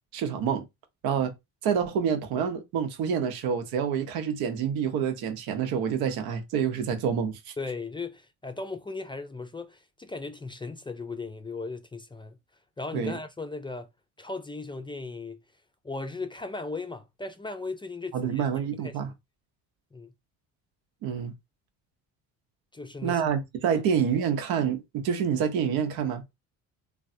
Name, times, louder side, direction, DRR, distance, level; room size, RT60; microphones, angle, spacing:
voice 1, 0.1-0.6 1.0-1.3 1.6-7.5 12.9-13.2 18.1-19.1 21.0-21.3 23.0-26.2, right 7 dB, 85° right, 0.8 m, -27 dB
voice 2, 7.6-12.4 12.8-13.9 14.2-15.4 15.8-18.5 18.8-19.1 19.9-20.1 22.7-23.2, left 3 dB, 15° left, 0.4 m, -37 dB
3.3 x 2.2 x 2.6 m
cardioid pair, 90°, 36 cm